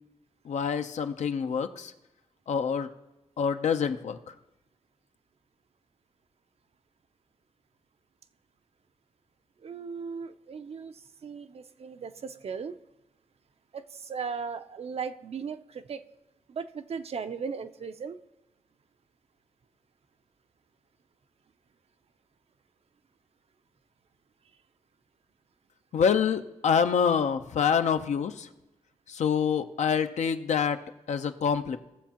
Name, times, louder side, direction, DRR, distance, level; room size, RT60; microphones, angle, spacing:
voice 1, 0.4-1.9 2.5-2.9 3.4-4.3 25.9-28.5 29.1-30.8 31.1-31.8, left 7 dB, 70° left, 8 dB, 0.7 m, -26 dB
voice 2, 9.6-12.7 13.7-16.0 16.5-18.2, right 5 dB, 55° right, 10 dB, 0.6 m, -37 dB
18.0 x 7.1 x 2.9 m, 0.98 s
cardioid pair, 75°, 13 cm